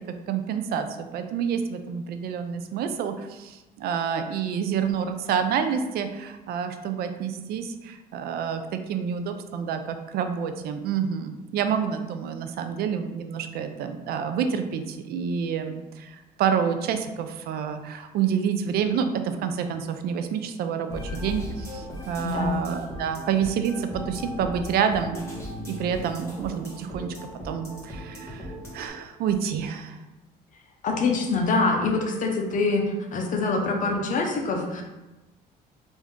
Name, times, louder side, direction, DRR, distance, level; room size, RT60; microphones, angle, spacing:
voice 1, 0.1-25.2 25.6-27.1 27.4-30.0, right 7 dB, 65° right, 8 dB, 0.4 m, -28 dB
sound 1, 20.9-28.9, left 1 dB, 15° left, 1.4 m, -37 dB
voice 2, 22.2-22.6 30.8-32.8 33.1-34.8, left 3 dB, 50° left, 2 dB, 0.7 m, -24 dB
3.4 x 2.6 x 3.6 m, 1.1 s
cardioid pair, 110°, 17 cm